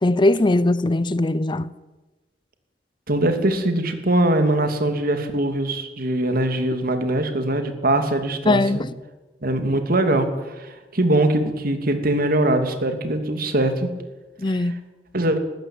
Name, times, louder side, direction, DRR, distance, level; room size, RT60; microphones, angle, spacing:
voice 1, 0.0-1.7 8.5-8.9 14.4-14.8, left 2 dB, 25° left, 0.6 m, -20 dB
voice 2, 3.1-8.8 9.4-13.9 14.5-14.7 15.1-15.4, right 1 dB, 55° right, 2.8 m, -22 dB
20.5 x 16.0 x 8.7 m
head